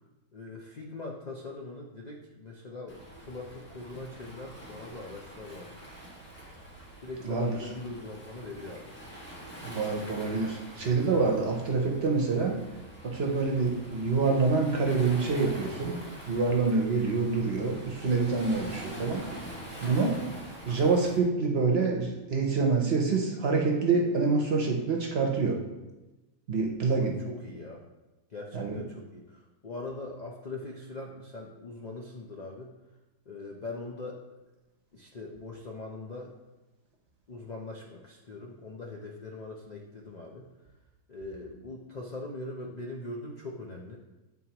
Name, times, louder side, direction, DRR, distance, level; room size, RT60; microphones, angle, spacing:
voice 1, 0.3-5.9 7.0-8.9 17.0-17.3 26.9-27.8 28.3-32.7 33.3-34.2 34.9-36.3 37.3-40.5 41.1-44.0, left 2 dB, 60° left, -1 dB, 0.4 m, -41 dB
Waves surf, 2.9-21.2, right 1 dB, 10° left, 1.5 m, -45 dB
voice 2, 7.2-7.7 9.6-12.6 13.0-19.3 19.8-20.2 20.7-25.6 26.5-27.2 28.5-28.8, right 4 dB, 55° right, 0 dB, 0.8 m, -26 dB
9.2 x 3.9 x 2.9 m, 1.1 s
omnidirectional pair, 1.6 m